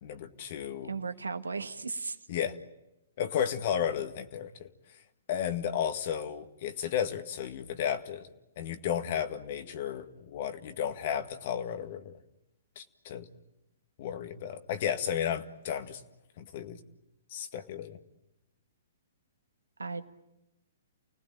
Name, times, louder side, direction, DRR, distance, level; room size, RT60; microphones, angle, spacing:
voice 1, 0.0-0.9 2.3-2.6 3.2-4.7 5.3-8.3 8.6-12.2 12.8-13.3 14.0-16.0 16.4-16.8 17.3-18.0, left 9 dB, 50° left, 8 dB, 1.9 m, -33 dB
voice 2, 0.9-2.2 19.8-20.1, right 4 dB, 85° right, 9 dB, 1.6 m, -35 dB
29.5 x 19.0 x 9.1 m, 0.92 s
hypercardioid pair, 125°, 0 cm